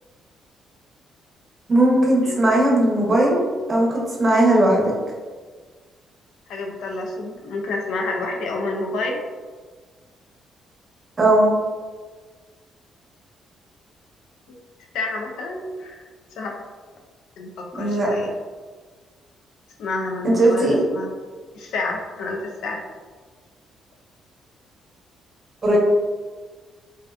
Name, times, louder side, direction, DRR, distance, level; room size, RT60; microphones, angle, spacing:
voice 1, 1.7-4.9 11.2-11.6 17.8-18.1 20.2-20.8 25.6-25.8, right 1 dB, 35° right, -3 dB, 0.7 m, -18 dB
voice 2, 6.5-9.2 14.9-16.0 16.4-16.5 17.4-18.3 19.8-21.1 21.5-22.8, left 2 dB, 80° left, 1 dB, 0.4 m, -29 dB
2.4 x 2.3 x 2.3 m, 1.5 s
cardioid pair, 90°, 0 cm